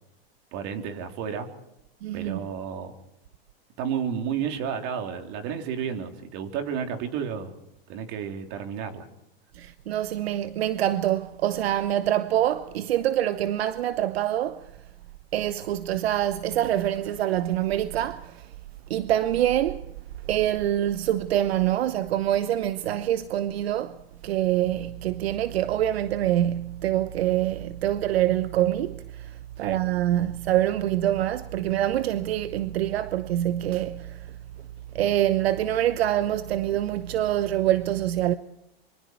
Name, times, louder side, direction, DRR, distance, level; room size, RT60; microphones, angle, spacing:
voice 1, 0.5-1.5 2.1-2.9 3.8-7.5 7.9-9.1 29.6-29.8, right 7 dB, 50° right, 3.5 m, -31 dB
voice 2, 2.0-2.5 9.6-14.7 15.3-18.4 18.9-19.8 20.3-24.0 24.2-34.3 34.9-38.4, right 12 dB, 80° right, 1.0 m, -25 dB
27.0 x 24.5 x 4.6 m
supercardioid pair, 135°, 30 cm